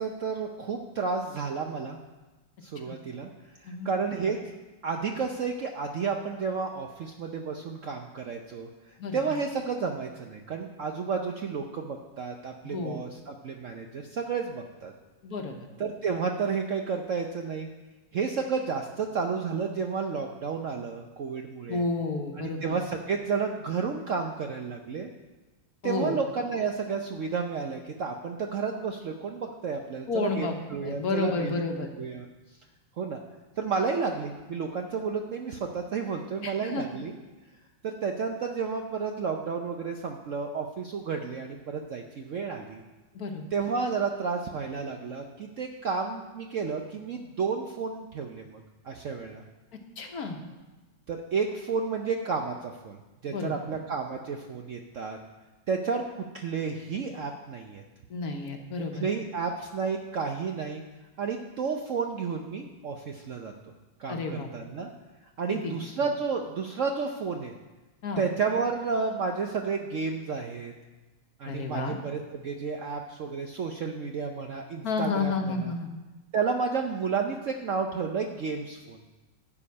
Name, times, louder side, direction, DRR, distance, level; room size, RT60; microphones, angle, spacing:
voice 1, 0.0-2.0 2.6-3.3 3.6-4.4 4.8-8.7 9.1-14.9 15.8-17.7 18.1-21.8 22.4-25.1 25.8-31.6 32.0-32.3 33.0-33.2 33.6-37.2 37.8-42.8 43.5-49.4 51.1-53.0 53.2-55.2 55.7-57.8 59.0-60.8 61.2-63.5 64.0-64.9 65.4-67.5 68.2-70.7 71.4-75.7 76.3-79.0, right 5 dB, 65° right, 3 dB, 0.8 m, -31 dB
voice 2, 12.6-13.0 15.2-15.5 21.7-22.8 25.8-26.2 30.1-30.5 30.8-31.9 36.4-36.8 43.1-43.4 50.0-50.4 53.3-53.5 58.1-59.1 64.1-64.5 65.5-65.7 68.0-68.2 71.5-72.0 74.8-75.9, left 3 dB, 60° left, 4 dB, 1.4 m, -31 dB
12.0 x 5.0 x 8.4 m, 1.2 s
omnidirectional pair, 2.0 m